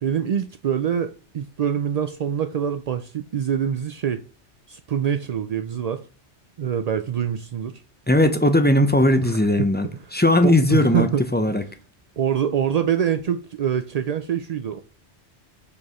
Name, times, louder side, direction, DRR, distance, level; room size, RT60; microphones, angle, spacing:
voice 1, 0.0-4.2 4.7-6.0 6.6-7.8 9.2-9.7 10.0-10.1 10.4-11.6 12.2-14.8, right 8 dB, 65° right, 0.4 m, -25 dB
voice 2, 8.1-11.6, left 1 dB, 15° left, 0.4 m, -18 dB
5.3 x 4.7 x 5.6 m
omnidirectional pair, 1.2 m